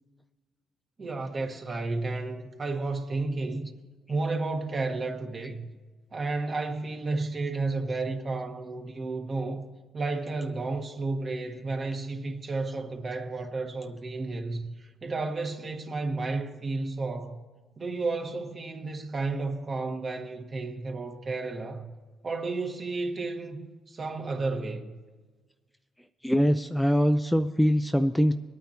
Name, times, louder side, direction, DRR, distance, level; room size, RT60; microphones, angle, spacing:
voice 1, 1.0-3.7 4.1-5.6 6.1-9.7 9.9-17.4 17.8-21.9 22.2-24.9, right 3 dB, 40° right, 1.6 m, -32 dB
voice 2, 26.2-28.3, equal, ahead, 0.4 m, -23 dB
23.5 x 9.2 x 2.9 m
cardioid pair, 90°, 0 cm